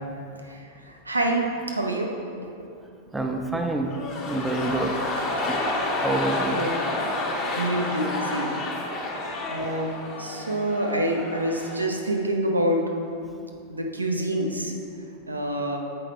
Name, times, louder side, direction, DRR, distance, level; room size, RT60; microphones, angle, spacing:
voice 1, 0.3-2.1 5.1-5.5 6.5-6.8 7.5-8.6 9.5-12.8 13.7-14.7 15.3-15.8, right 1 dB, 80° right, 2 dB, 0.8 m, -27 dB
voice 2, 3.1-3.9 4.3-4.9 6.0-6.6, right 2 dB, 10° right, 3 dB, 0.5 m, -27 dB
sound 1, 3.9-12.0 12.2-12.3, left 2 dB, 35° left, 1.2 m, -30 dB
7.6 x 4.8 x 4.3 m, 2.5 s
figure-of-eight pair, 90°, 0 cm